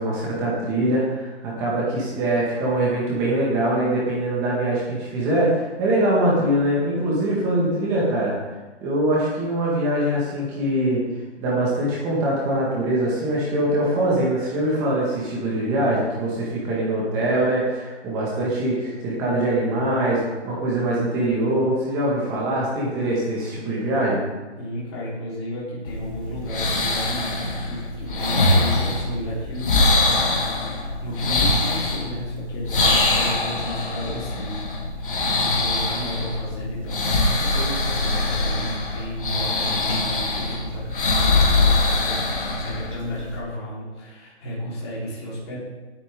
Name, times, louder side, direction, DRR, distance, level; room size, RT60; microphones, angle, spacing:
voice 1, 0.0-8.4 8.8-11.0 11.4-24.2, right 1 dB, 10° right, -5 dB, 1.6 m, -23 dB
voice 2, 24.6-34.6 35.0-42.2 42.5-45.6, equal, 25° left, -6 dB, 3.9 m, -33 dB
sound 1, 25.8-43.4, left 2 dB, 50° left, 3.1 m, -23 dB
18.0 x 8.5 x 3.7 m, 1.2 s
hypercardioid pair, 175°, 34 cm